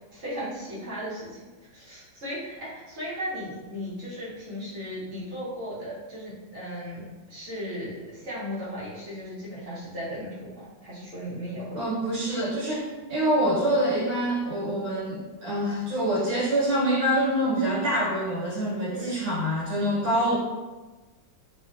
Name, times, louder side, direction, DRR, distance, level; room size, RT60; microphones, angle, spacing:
voice 1, 0.0-11.8 18.9-19.1, equal, 50° right, -9 dB, 1.1 m, -36 dB
voice 2, 11.7-20.3, right 1 dB, 70° right, -8 dB, 1.7 m, -25 dB
3.4 x 2.4 x 2.5 m, 1.2 s
omnidirectional pair, 2.2 m